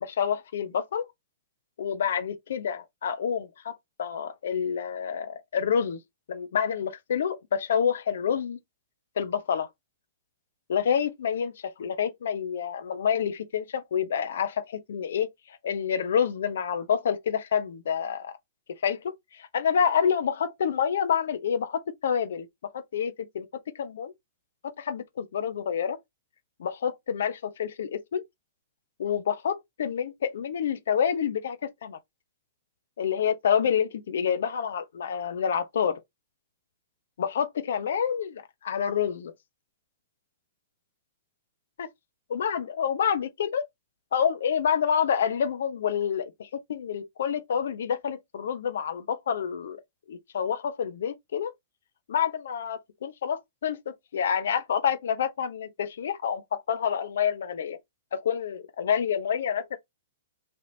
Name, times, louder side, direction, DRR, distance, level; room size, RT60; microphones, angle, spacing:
voice 1, 0.0-1.0 1.8-6.0 6.3-8.6 9.2-9.7 10.7-18.4 18.8-22.5 22.7-23.5 23.7-24.1 24.8-26.0 26.6-28.2 29.0-31.6 31.8-32.0 33.0-36.0 37.2-39.3 41.8-41.9 42.3-43.6 44.1-49.8 50.1-51.5 52.1-57.8 58.1-59.8, left 7 dB, 65° left, 0.8 m, -28 dB
3.4 x 2.8 x 2.7 m
figure-of-eight pair, 110°, 0 cm